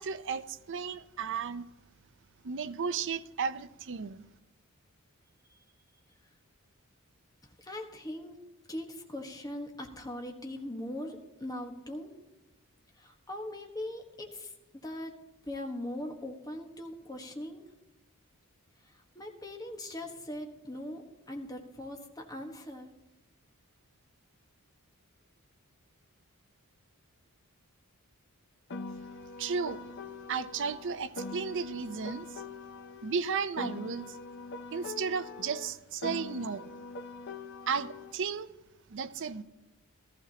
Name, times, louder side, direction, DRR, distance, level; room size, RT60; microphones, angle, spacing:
voice 1, 0.0-1.7 2.4-4.3 29.4-29.9 30.3-32.4 33.0-34.2 34.7-36.7 37.7-38.5 38.9-39.4, right 5 dB, 55° right, 0.5 m, -34 dB
voice 2, 7.6-8.4 8.7-12.1 13.0-17.6 18.8-22.9, left 1 dB, 15° left, 1.3 m, -41 dB
Piano, 28.7-33.2 33.6-38.2, left 3 dB, 50° left, 0.6 m, -43 dB
15.0 x 14.0 x 2.9 m
head